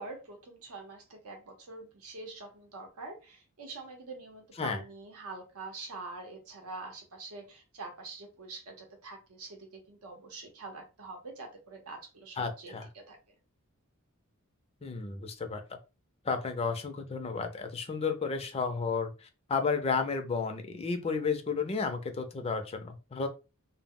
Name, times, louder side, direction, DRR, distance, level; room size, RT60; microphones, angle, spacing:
voice 1, 0.0-13.2, right 3 dB, 85° right, 2 dB, 0.7 m, -45 dB
voice 2, 12.4-12.9 14.8-15.6 16.3-23.3, left 5 dB, 30° left, 6 dB, 0.4 m, -32 dB
2.0 x 2.0 x 3.5 m, 0.30 s
head